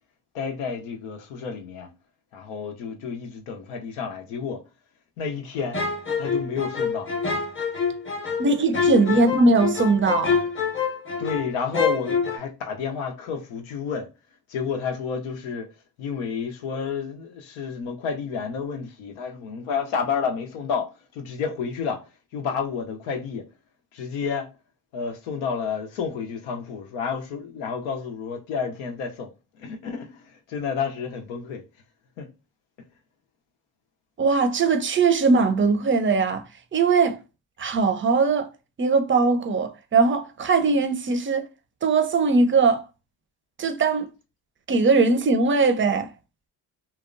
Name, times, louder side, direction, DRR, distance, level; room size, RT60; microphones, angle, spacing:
voice 1, 0.3-1.9 2.3-4.6 5.2-5.8 6.2-7.5 9.1-9.2 11.2-14.1 14.5-15.7 16.0-22.0 22.3-23.5 23.9-24.5 24.9-31.6 32.2-32.3, left 6 dB, 90° left, 0.6 m, -30 dB
sound 1, 5.7-11.5 11.7-12.4, left 5 dB, 25° left, 0.7 m, -26 dB
voice 2, 8.4-10.4 34.2-37.2 37.6-38.5 38.8-41.5 41.8-42.8 43.6-44.1 44.7-46.1, right 4 dB, 25° right, 0.5 m, -20 dB
2.8 x 2.0 x 2.4 m
supercardioid pair, 50°, 48 cm